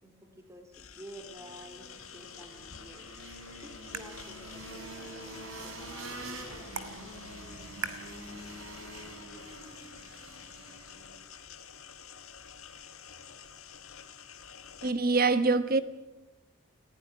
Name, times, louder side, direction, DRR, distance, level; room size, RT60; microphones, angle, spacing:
voice 1, 0.0-7.2, right 1 dB, 15° right, 2.6 m, -51 dB
sound 1, 0.7-14.9, left 7 dB, 80° left, 1.7 m, -49 dB
sound 2, 1.4-11.2, right 2 dB, 70° right, 3.3 m, -46 dB
sound 3, 3.0-9.1, right 5 dB, 90° right, 1.9 m, -46 dB
voice 2, 14.8-15.8, right 3 dB, 40° right, 1.2 m, -24 dB
19.5 x 17.0 x 9.2 m
head